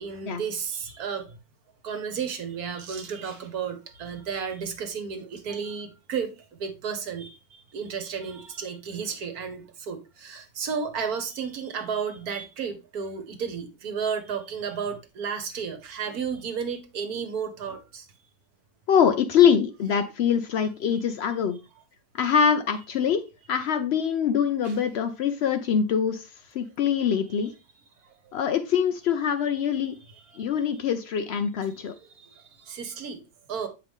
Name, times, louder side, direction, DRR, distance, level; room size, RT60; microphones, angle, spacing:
voice 1, 0.0-1.4 1.8-6.3 6.6-18.1 24.6-24.7 30.3-30.5 31.8-33.2 33.5-33.7, right 6 dB, 65° right, 1.4 m, -33 dB
voice 2, 18.9-21.6 22.2-26.3 26.5-27.5 28.3-30.0 30.4-31.9, left 7 dB, 80° left, 0.5 m, -24 dB
7.5 x 4.8 x 3.5 m
omnidirectional pair, 1.8 m